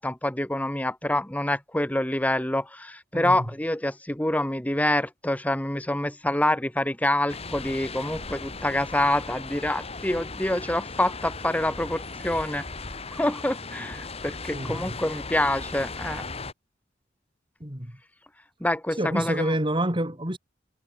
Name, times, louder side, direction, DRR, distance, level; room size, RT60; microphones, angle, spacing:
voice 1, 0.0-12.6 13.1-16.2 18.6-19.4, left 1 dB, 10° left, 1.2 m, -26 dB
voice 2, 3.1-3.5 14.5-15.0 17.6-18.0 19.0-20.4, right 1 dB, 25° right, 4.4 m, -28 dB
sound 1, 7.3-16.5, left 3 dB, 35° left, 2.4 m, -37 dB
head